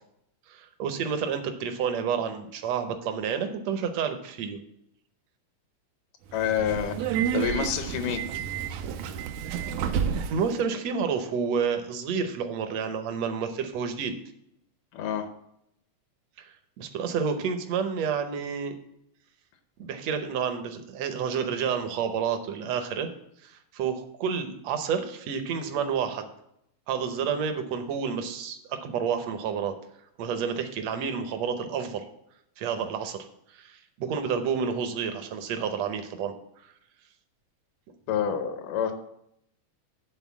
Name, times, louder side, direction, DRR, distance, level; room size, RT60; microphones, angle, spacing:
voice 1, 0.5-4.6 10.3-14.1 16.4-16.5 16.8-18.8 19.8-23.1 23.4-26.3 26.9-29.7 30.2-32.0 32.6-33.2 33.5-36.3, right 6 dB, 70° right, 7 dB, 1.7 m, -29 dB
voice 2, 6.3-7.0 7.3-8.2 14.9-15.3 38.1-38.9, left 8 dB, 80° left, 7 dB, 2.3 m, -27 dB
Subway metro underground, 6.3-10.5, right 8 dB, 85° right, 1.6 m, -30 dB
10.0 x 3.9 x 7.1 m, 0.77 s
omnidirectional pair, 3.7 m